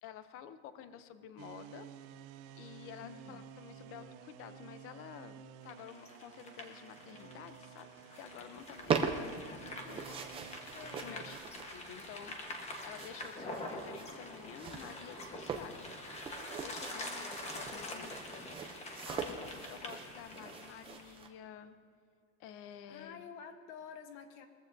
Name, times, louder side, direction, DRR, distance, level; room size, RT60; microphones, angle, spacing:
voice 1, 0.0-1.9 2.5-7.9 8.2-10.3 11.0-12.4 12.8-16.0 16.6-18.4 19.0-19.4 19.7-21.8 22.4-23.2, left 9 dB, 30° left, 11 dB, 0.6 m, -50 dB
sound 1, 1.4-12.8, right 9 dB, 80° right, 0.8 m, -53 dB
voice 2, 3.0-3.4 10.7-11.2 17.0-17.6 17.9-18.1 22.9-24.5, left 7 dB, 75° left, 7 dB, 1.3 m, -51 dB
sound 2, 5.7-21.1, left 1 dB, 15° left, 1.1 m, -46 dB
sound 3, 8.5-21.3, right 6 dB, 15° right, 0.4 m, -41 dB
21.0 x 15.0 x 2.6 m, 2.3 s
cardioid pair, 170°, 42 cm